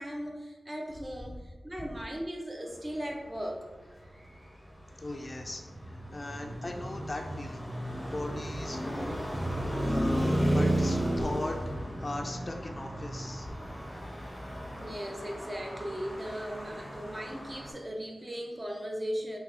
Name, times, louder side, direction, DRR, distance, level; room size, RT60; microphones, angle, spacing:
voice 1, 0.0-3.6 14.8-19.4, equal, 25° right, 1 dB, 0.6 m, -37 dB
Traffic noise roadway noise, 4.0-17.7, right 1 dB, ahead, 1.0 m, -33 dB
voice 2, 5.0-5.6 5.9-7.7 8.1-9.5 9.8-13.5, left 2 dB, 35° left, 2 dB, 0.3 m, -39 dB
3.5 x 2.3 x 3.2 m, 1.2 s
wide cardioid pair, 65°, 0 cm